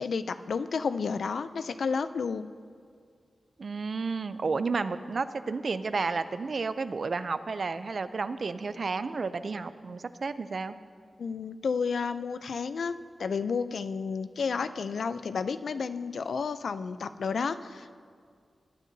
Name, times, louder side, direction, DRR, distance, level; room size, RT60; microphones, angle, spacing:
voice 1, 0.0-2.5 11.2-12.9 13.2-17.9, left 5 dB, 85° left, 12 dB, 0.4 m, -31 dB
voice 2, 3.6-10.7, right 4 dB, 55° right, 12 dB, 0.4 m, -31 dB
20.0 x 9.2 x 2.7 m, 2.2 s
wide cardioid pair, 135°, 0 cm